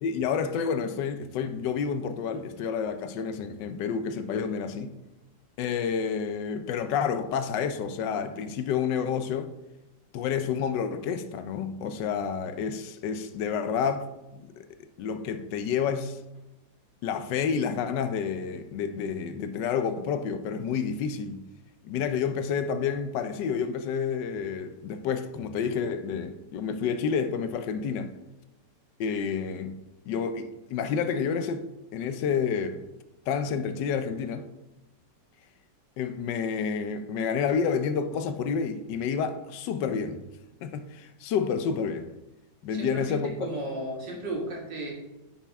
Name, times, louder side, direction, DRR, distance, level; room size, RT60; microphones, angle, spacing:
voice 1, 0.0-4.9 5.6-9.5 10.1-14.7 15.0-16.2 17.0-21.4 21.8-28.1 29.0-29.7 30.1-31.6 31.9-32.8 33.3-34.5 36.0-40.2 40.6-42.1 42.6-43.5, left 6 dB, 85° left, 1.3 m, -29 dB
voice 2, 42.7-44.9, right 1 dB, 85° right, 2.7 m, -34 dB
9.8 x 5.9 x 3.5 m
omnidirectional pair, 1.9 m